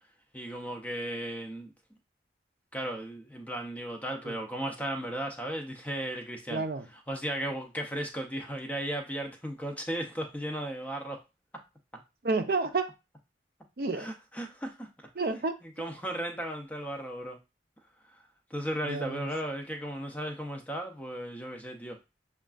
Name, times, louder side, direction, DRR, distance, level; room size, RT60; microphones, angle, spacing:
voice 1, 0.3-1.7 2.7-6.6 7.1-11.2 13.9-15.1 15.6-17.4 18.5-22.0, right 1 dB, 10° left, 0.5 m, -35 dB
voice 2, 6.5-6.9 12.2-12.9 13.8-14.1 15.2-15.5 18.8-19.3, right 3 dB, 55° right, 0.5 m, -30 dB
6.3 x 2.3 x 2.4 m
head